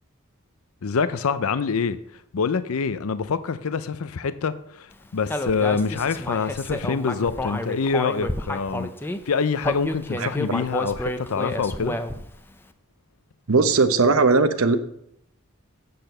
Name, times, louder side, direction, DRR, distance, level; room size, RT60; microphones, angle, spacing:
voice 1, 0.8-2.0 2.3-12.0, left 5 dB, 85° left, 0.5 m, -26 dB
Human voice, 5.3-9.2 9.6-12.3, left 1 dB, 10° left, 0.6 m, -30 dB
voice 2, 13.5-14.8, right 3 dB, 80° right, 0.9 m, -18 dB
7.8 x 6.8 x 6.7 m
head